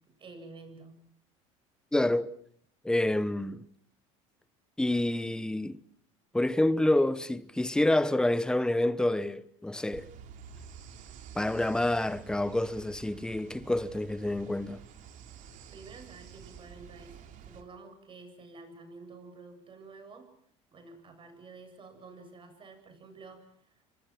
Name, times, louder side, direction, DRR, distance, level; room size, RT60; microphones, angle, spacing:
voice 1, 0.2-1.0 15.7-17.2 17.4-20.3 20.7-23.9, right 3 dB, 35° right, 8.0 m, -50 dB
voice 2, 1.9-2.3 2.8-3.6 4.8-5.8 6.3-10.1 11.3-14.8, left 1 dB, 5° left, 1.1 m, -28 dB
sound 1, 9.9-17.6, right 8 dB, 55° right, 3.7 m, -49 dB
29.5 x 24.0 x 6.1 m
supercardioid pair, 100°, 15 cm